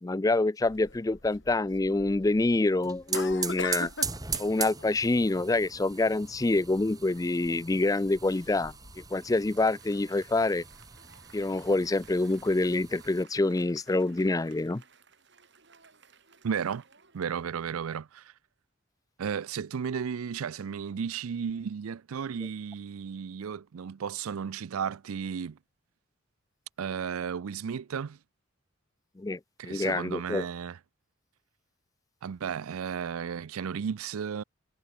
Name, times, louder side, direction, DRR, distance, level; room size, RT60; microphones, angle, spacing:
voice 1, 0.0-3.9 4.4-8.7 9.1-10.6 11.3-14.8 29.2-30.5, left 2 dB, 15° left, 0.4 m, -26 dB
sound 1, 0.6-9.1, left 4 dB, 55° left, 4.1 m, -44 dB
sound 2, 2.6-13.2, right 6 dB, 15° right, 2.0 m, -40 dB
Applause, 8.5-18.0, right 6 dB, 55° right, 4.8 m, -59 dB
voice 2, 16.4-16.8 17.1-18.3 19.2-25.6 26.8-28.2 29.6-30.8 32.2-34.4, right 7 dB, 85° right, 0.4 m, -34 dB
head